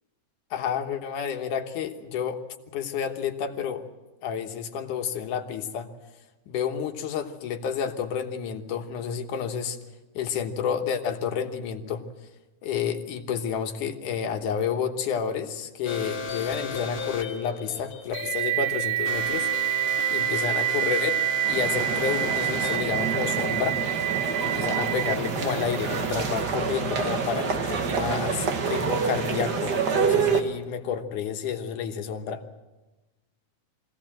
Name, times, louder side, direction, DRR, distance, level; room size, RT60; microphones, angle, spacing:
voice 1, 0.5-2.4 2.7-3.8 4.2-5.9 6.5-9.8 10.2-12.0 12.6-19.5 20.1-21.2 21.5-23.8 24.4-32.4, left 7 dB, 70° left, 6 dB, 2.6 m, -30 dB
sound 1, 15.9-23.0, left 5 dB, 55° left, 2.8 m, -35 dB
sound 2, 18.1-26.1, right 13 dB, 70° right, 2.2 m, -28 dB
sound 3, 21.4-30.4, right 5 dB, 50° right, 1.2 m, -27 dB
23.5 x 17.5 x 7.6 m, 1.1 s
omnidirectional pair, 3.8 m